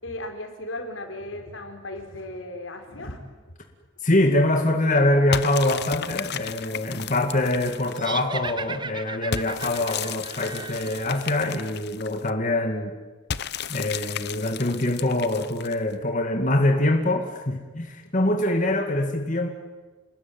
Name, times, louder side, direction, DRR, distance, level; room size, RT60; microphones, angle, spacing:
voice 1, 0.0-3.2 8.4-8.5 18.0-18.1, left 1 dB, 90° left, 4 dB, 4.5 m, -36 dB
voice 2, 4.0-12.9 13.7-19.5, left 1 dB, 40° left, 4 dB, 2.2 m, -24 dB
sound 1, 5.3-8.2 9.3-12.3 13.3-15.9, left 8 dB, 60° left, 0.8 m, -34 dB
sound 2, 8.0-11.4, right 4 dB, 25° right, 1.0 m, -36 dB
29.0 x 21.0 x 9.4 m, 1.3 s
head